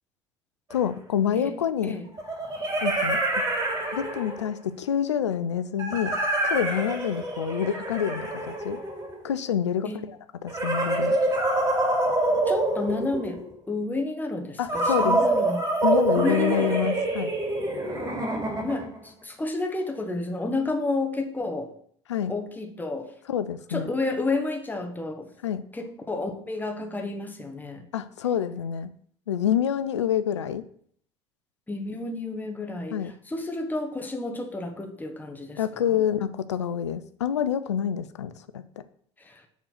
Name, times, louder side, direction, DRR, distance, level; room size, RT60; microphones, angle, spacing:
voice 1, 0.7-1.9 2.8-3.4 3.9-6.1 6.4-8.8 9.2-11.2 14.6-15.2 15.8-17.3 22.1-22.3 23.3-23.9 25.4-25.6 27.9-28.9 29.3-30.6 32.9-33.1 35.6-38.6, left 9 dB, 90° left, 12 dB, 0.4 m, -27 dB
sound 1, 0.7-0.8 2.2-4.5 5.8-9.3 10.5-13.5 14.7-19.0, right 2 dB, 30° right, 3.1 m, -26 dB
voice 2, 12.5-15.6 16.1-16.9 18.6-21.7 22.3-23.1 23.7-25.3 25.7-27.9 31.7-35.6 35.9-36.0 39.2-39.4, left 2 dB, 10° left, 3 dB, 1.3 m, -31 dB
7.1 x 3.8 x 6.0 m, 0.62 s
hypercardioid pair, 65°, 15 cm